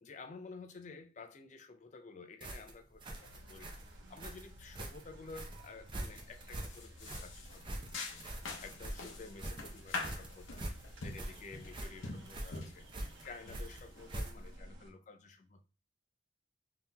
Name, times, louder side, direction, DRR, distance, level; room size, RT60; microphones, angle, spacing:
voice 1, 0.0-10.7 11.0-15.6, left 4 dB, 40° left, 0.4 m, -52 dB
sound 1, 2.4-14.6, right 1 dB, 25° right, 0.5 m, -44 dB
sound 2, 3.0-14.9, right 1 dB, 70° right, 1.0 m, -55 dB
sound 3, 6.1-6.3 6.6-14.2, left 3 dB, 80° left, 0.7 m, -45 dB
5.5 x 2.8 x 2.2 m
head